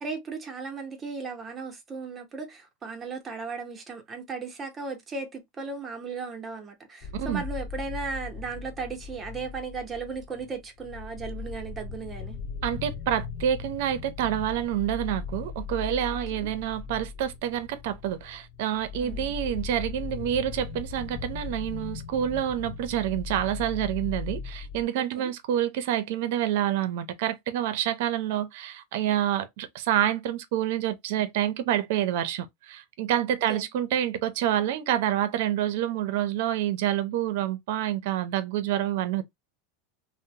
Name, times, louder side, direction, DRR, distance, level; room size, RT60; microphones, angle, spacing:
voice 1, 0.0-12.4 16.3-16.5 19.0-19.3 25.2-25.3 33.5-33.7, right 4 dB, 20° right, 0.7 m, -36 dB
sound 1, 7.0-24.8, left 5 dB, 45° left, 0.4 m, -38 dB
voice 2, 7.1-7.4 12.6-39.2, right 11 dB, 70° right, 0.5 m, -28 dB
2.6 x 2.0 x 2.7 m
supercardioid pair, 130°, 0 cm